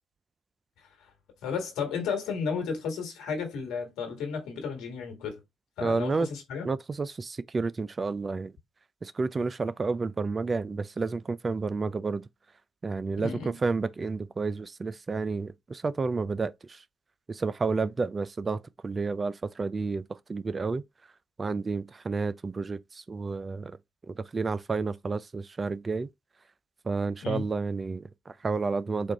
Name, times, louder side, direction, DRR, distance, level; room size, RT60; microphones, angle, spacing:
voice 1, 0.8-1.1 1.4-5.4 5.8-6.6 13.2-13.6 27.2-27.4, left 5 dB, 70° left, 1.5 m, -33 dB
voice 2, 5.8-6.3 6.6-8.5 9.0-12.2 12.8-16.8 17.3-20.8 21.4-23.8 24.1-26.1 26.9-29.1, right 4 dB, 35° right, 0.3 m, -30 dB
4.5 x 2.4 x 3.5 m
hypercardioid pair, 45°, 0 cm